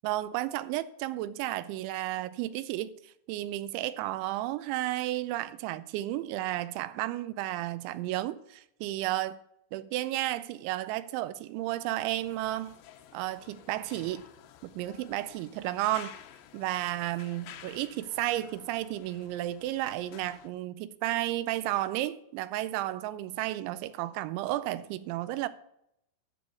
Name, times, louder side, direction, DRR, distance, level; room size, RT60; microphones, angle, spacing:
voice 1, 0.0-9.4 9.7-12.8 13.1-14.2 14.6-16.2 16.5-25.5, right 15 dB, 85° right, 2.8 m, -33 dB
sound 1, 12.1-20.5, left 10 dB, 75° left, 2.8 m, -52 dB
12.5 x 6.3 x 6.9 m
omnidirectional pair, 5.5 m